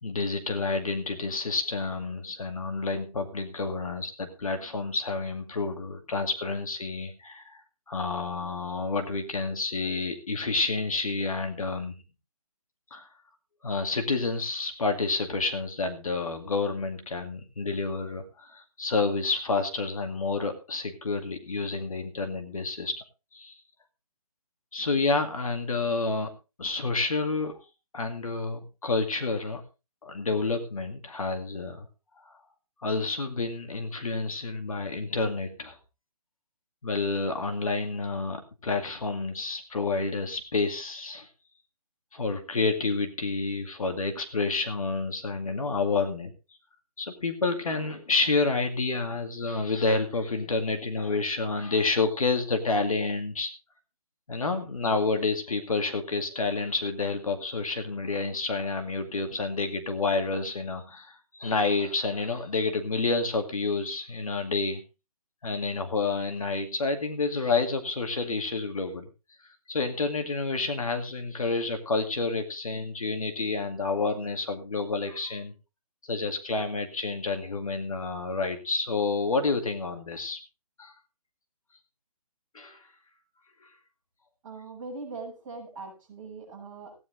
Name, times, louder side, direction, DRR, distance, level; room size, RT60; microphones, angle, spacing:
voice 1, 0.0-7.6 7.9-11.9 12.9-13.1 13.6-22.9 23.3-23.5 24.7-26.3 26.6-27.6 27.9-29.6 30.0-31.9 32.3-32.4 32.8-35.8 36.8-41.3 42.1-46.3 47.0-53.5 54.3-64.8 65.4-69.1 69.7-75.5 76.1-80.4 80.8-80.9 82.5-82.9 83.6-83.7, left 3 dB, 65° left, 6 dB, 2.3 m, -29 dB
voice 2, 84.4-87.0, right 3 dB, 10° right, -7 dB, 7.2 m, -41 dB
16.5 x 10.0 x 3.9 m, 0.30 s
hypercardioid pair, 175°, 19 cm